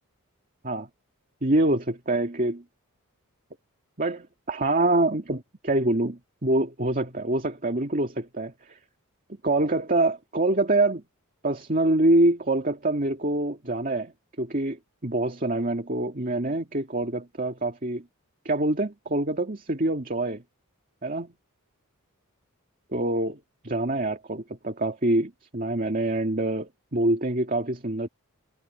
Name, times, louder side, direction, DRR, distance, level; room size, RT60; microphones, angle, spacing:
voice 1, 1.4-2.6 4.0-8.8 9.4-11.0 11.4-14.1 14.4-18.0 18.4-20.4 21.0-21.3 22.9-28.1, right 2 dB, 40° right, 2.2 m, -25 dB
head